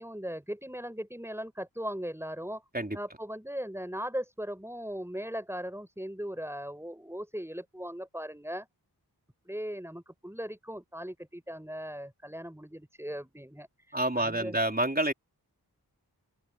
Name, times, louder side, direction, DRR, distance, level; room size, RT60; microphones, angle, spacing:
voice 1, 0.0-2.6 2.9-8.7 9.5-14.6, equal, 5° right, 6.9 m, -38 dB
voice 2, 13.9-15.1, right 1 dB, 25° right, 3.7 m, -28 dB
open air
wide cardioid pair, 50°, 39 cm